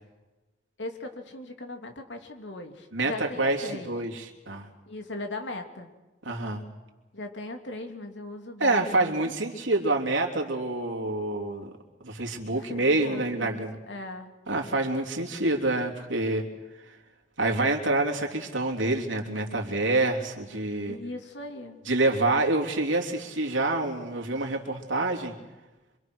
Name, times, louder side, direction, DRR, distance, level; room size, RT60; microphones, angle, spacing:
voice 1, 0.8-3.9 4.9-5.9 7.1-9.4 12.5-14.3 20.8-21.8, left 2 dB, 75° left, 4 dB, 2.9 m, -39 dB
voice 2, 2.9-4.7 6.2-6.6 8.6-11.7 12.0-13.8 14.5-16.5 16.9-17.0 17.4-21.0 21.8-25.3, right 2 dB, 90° right, 1 dB, 3.3 m, -27 dB
27.0 x 24.5 x 6.3 m, 1.1 s
head